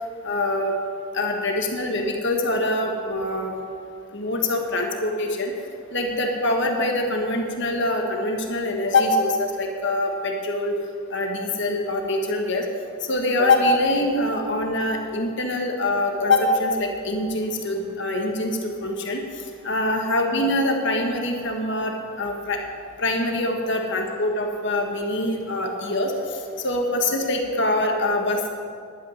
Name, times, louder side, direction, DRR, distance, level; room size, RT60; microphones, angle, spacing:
voice 1, 0.2-0.8 1.1-3.5 4.1-5.5 5.9-10.8 11.1-12.6 13.1-19.2 19.6-21.9 22.2-22.6 23.0-28.5, left 2 dB, 55° left, 2 dB, 1.8 m, -24 dB
11.5 x 9.2 x 9.6 m, 2.3 s
head